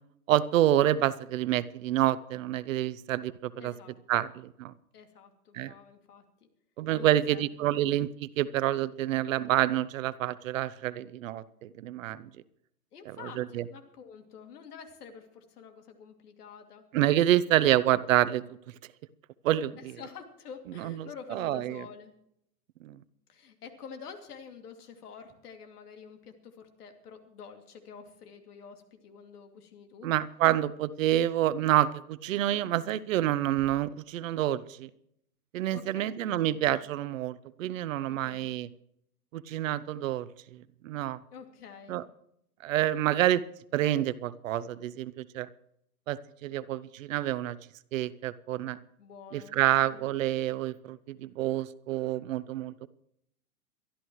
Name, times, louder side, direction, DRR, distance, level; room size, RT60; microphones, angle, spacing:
voice 1, 0.3-3.7 4.1-4.7 5.5-5.7 6.8-12.3 13.4-13.6 16.9-18.4 19.4-20.0 20.8-21.9 22.8-23.0 30.0-34.9 35.5-38.7 39.3-40.3 40.8-41.2 41.9-42.0 42.6-43.4 43.7-45.5 46.1-47.6 47.9-48.8 49.3-52.9, right 13 dB, 55° right, 17 dB, 0.8 m, -28 dB
voice 2, 3.6-4.2 4.9-6.2 6.9-7.5 7.7-7.8 12.9-16.8 19.8-22.1 23.3-30.1 35.7-36.2 38.1-38.5 41.3-42.0 49.0-49.6 49.9-50.1, left 6 dB, 75° left, 5 dB, 2.7 m, -48 dB
22.5 x 13.0 x 3.1 m, 0.74 s
hypercardioid pair, 135°, 47 cm